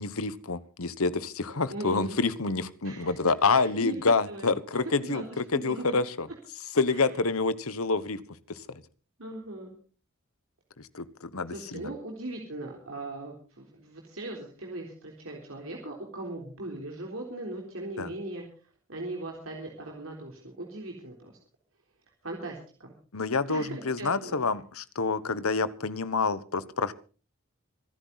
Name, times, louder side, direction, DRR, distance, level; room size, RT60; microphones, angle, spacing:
voice 1, 0.0-6.3 6.7-8.2 8.7-8.8 10.9-11.9 18.0-18.1 23.1-26.9, left 4 dB, 75° left, 15 dB, 1.2 m, -27 dB
voice 2, 1.7-2.2 2.8-4.0 4.3-4.5 4.7-5.9 6.9-7.1 9.2-9.7 11.5-18.4 18.9-21.3 22.2-22.9 23.5-24.3, right 2 dB, 65° right, 0 dB, 3.7 m, -39 dB
25.5 x 10.5 x 4.1 m, 0.37 s
head